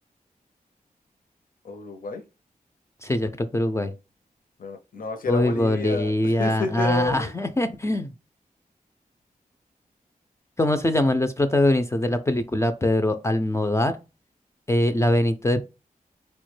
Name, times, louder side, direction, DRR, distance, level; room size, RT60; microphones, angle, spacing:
voice 1, 1.6-2.2 4.6-7.3, left 3 dB, 70° left, 0.5 m, -30 dB
voice 2, 3.0-3.9 5.3-8.1 10.6-13.9 14.7-15.6, left 1 dB, 20° left, 0.3 m, -22 dB
4.5 x 2.1 x 3.1 m
wide cardioid pair, 90°, 15 cm